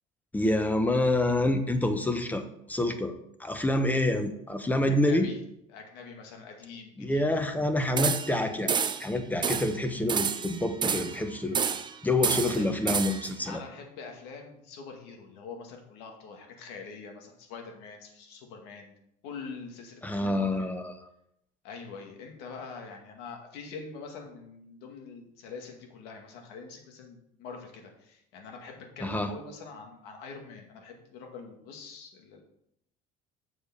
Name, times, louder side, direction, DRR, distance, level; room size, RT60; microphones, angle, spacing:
voice 1, 0.3-3.1 3.4-5.3 7.0-8.7 9.0-11.6 12.0-13.6 20.0-20.9 29.0-29.3, left 1 dB, 10° left, 7 dB, 1.1 m, -27 dB
voice 2, 4.9-5.4 5.7-7.6 12.2-12.7 13.4-18.9 19.2-20.7 21.6-32.4, left 5 dB, 75° left, 3 dB, 2.2 m, -44 dB
sound 1, 8.0-8.4 8.7-9.1 9.4-9.7 10.1-11.2 11.5-11.9 12.2-13.3, right 6 dB, 25° right, 0.6 m, -29 dB
7.1 x 5.0 x 7.0 m, 0.76 s
supercardioid pair, 110°, 17 cm